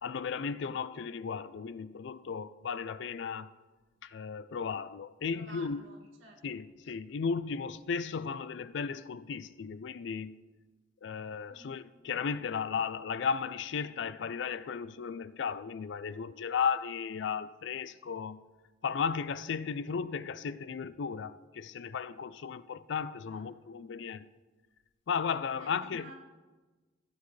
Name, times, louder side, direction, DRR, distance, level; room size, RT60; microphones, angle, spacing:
voice 1, 0.0-3.5 4.0-5.8 6.4-10.4 11.0-18.4 18.8-24.3 25.1-26.1, left 6 dB, 65° left, 0.4 m, -35 dB
voice 2, 5.3-6.4 11.5-11.8 23.2-23.5 25.6-26.1, right 2 dB, 90° right, 2.3 m, -52 dB
15.0 x 8.4 x 3.2 m
head